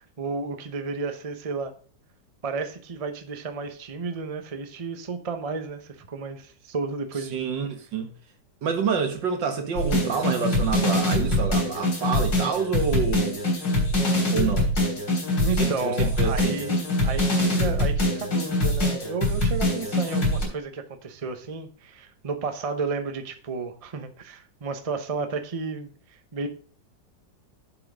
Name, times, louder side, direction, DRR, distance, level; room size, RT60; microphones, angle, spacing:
voice 1, 0.2-1.7 2.4-7.4 15.4-26.5, right 4 dB, 30° right, 0.7 m, -32 dB
voice 2, 7.3-8.1 8.6-13.4 14.3-14.8 15.6-16.6, right 6 dB, 80° right, 2.1 m, -27 dB
sound 1, 9.8-20.5, left 1 dB, 85° left, 4.2 m, -24 dB
7.7 x 6.1 x 5.0 m
omnidirectional pair, 2.0 m